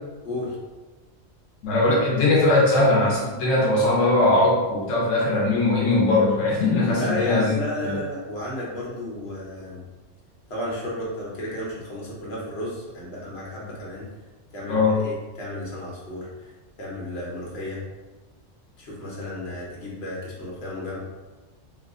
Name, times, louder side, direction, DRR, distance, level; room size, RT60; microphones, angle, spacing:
voice 1, 0.2-0.6 6.8-9.8 10.5-14.1 14.5-16.5 16.8-17.8 18.8-21.0, left 1 dB, 60° left, -5 dB, 1.2 m, -33 dB
voice 2, 1.6-7.6 7.8-8.0 14.7-15.0, left 2 dB, 85° left, -4 dB, 1.0 m, -20 dB
3.0 x 2.1 x 3.5 m, 1.2 s
omnidirectional pair, 1.3 m